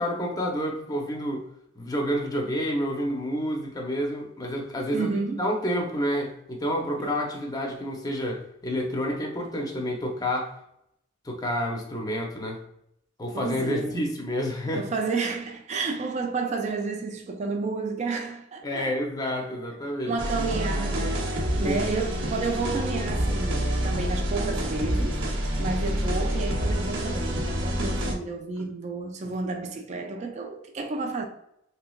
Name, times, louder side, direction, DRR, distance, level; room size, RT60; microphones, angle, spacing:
voice 1, 0.0-1.5 1.8-5.1 5.4-10.5 11.2-12.6 13.2-14.9 18.6-20.2 21.5-21.8 28.6-28.7, equal, 20° left, 0.6 m, -29 dB
voice 2, 4.9-5.5 7.0-7.1 13.3-14.0 14.7-19.0 19.9-31.2, right 4 dB, 35° right, 0.3 m, -31 dB
sound 1, 20.2-28.1, equal, 70° right, 0.7 m, -27 dB
3.3 x 3.1 x 2.2 m
head